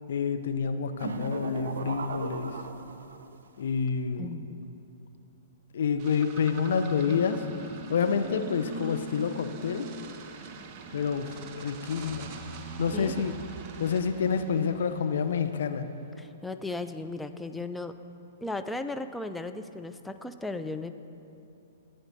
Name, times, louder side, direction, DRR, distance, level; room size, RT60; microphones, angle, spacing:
voice 1, 0.1-2.6 3.6-4.3 5.7-7.4 7.9-9.9 10.9-12.3 12.8-13.3 13.8-15.9, left 6 dB, 65° left, 8 dB, 0.6 m, -28 dB
sound 1, 1.0-3.4, right 4 dB, 70° right, 0.6 m, -36 dB
sound 2, 6.0-15.5, right 3 dB, 40° right, 0.8 m, -43 dB
voice 2, 12.9-13.3 16.2-17.9 18.4-20.9, left 2 dB, 5° left, 8 dB, 0.4 m, -36 dB
14.5 x 9.0 x 2.7 m, 2.7 s
figure-of-eight pair, 115°, 0 cm